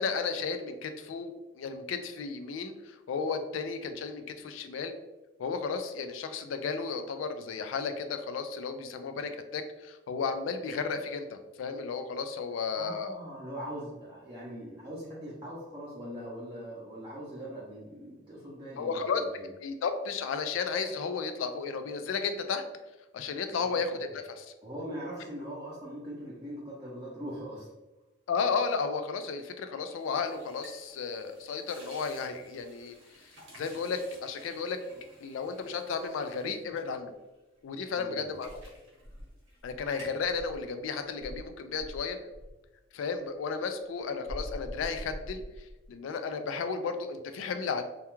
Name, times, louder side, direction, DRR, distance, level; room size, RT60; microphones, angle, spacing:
voice 1, 0.0-5.0 5.4-13.1 18.8-19.2 19.6-22.6 23.1-24.5 28.3-33.0 33.6-34.8 35.2-37.1 37.6-38.5 39.6-42.2 42.9-47.8, left 5 dB, 85° left, 8 dB, 0.3 m, -33 dB
voice 2, 12.8-19.5 23.6-23.9 24.6-27.7 37.9-38.3, equal, 25° right, -8 dB, 0.5 m, -41 dB
sound 1, 29.8-37.6 38.0-39.6 39.9-40.3, equal, 75° right, 0.7 m, -55 dB
Insect, 38.4-40.7 41.2-42.6 44.3-45.9, equal, 45° left, 0.7 m, -43 dB
2.3 x 2.2 x 3.0 m, 1.1 s
head